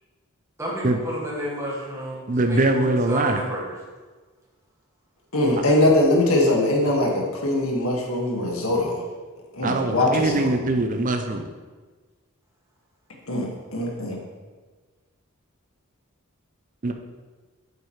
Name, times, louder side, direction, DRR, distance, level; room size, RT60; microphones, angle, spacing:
voice 1, 0.6-3.6, equal, 15° right, -6 dB, 2.0 m, -31 dB
voice 2, 2.3-3.4 9.6-11.5 16.8-16.9, right 2 dB, 40° right, 5 dB, 0.5 m, -22 dB
voice 3, 5.3-9.0 9.5-10.5 13.3-14.2, left 1 dB, 85° left, -1 dB, 1.9 m, -22 dB
8.7 x 8.0 x 3.2 m, 1.4 s
head